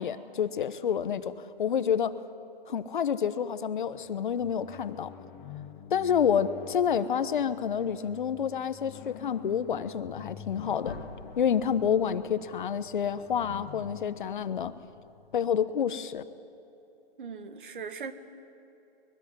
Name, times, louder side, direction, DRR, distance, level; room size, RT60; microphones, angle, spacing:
voice 1, 0.0-2.2 2.7-5.1 5.9-11.0 11.4-14.7 15.3-16.2, left 8 dB, 55° left, 13 dB, 1.1 m, -28 dB
sound 1, 3.9-15.6, left 8 dB, 15° left, 0.9 m, -48 dB
sound 2, 10.8-15.6, left 4 dB, 85° left, 2.1 m, -49 dB
voice 2, 17.2-18.1, right 6 dB, 60° right, 10 dB, 1.9 m, -39 dB
22.0 x 21.5 x 10.0 m, 3.0 s
hypercardioid pair, 155°, 29 cm